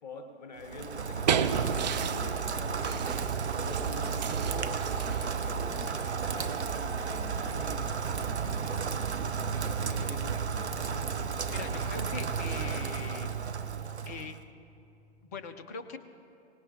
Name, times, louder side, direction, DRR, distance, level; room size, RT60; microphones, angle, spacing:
voice 1, 0.0-3.1 3.4-9.4 9.6-10.8, left 3 dB, 40° left, 6 dB, 1.0 m, -46 dB
Rain, 0.6-14.4, right 6 dB, 80° right, 0.8 m, -33 dB
sound 1, 0.8-8.9, right 7 dB, 40° right, 0.6 m, -35 dB
voice 2, 11.5-13.3 14.0-14.3 15.2-16.0, left 5 dB, 15° left, 7 dB, 0.4 m, -41 dB
24.5 x 18.0 x 2.8 m, 2.7 s
figure-of-eight pair, 120°, 33 cm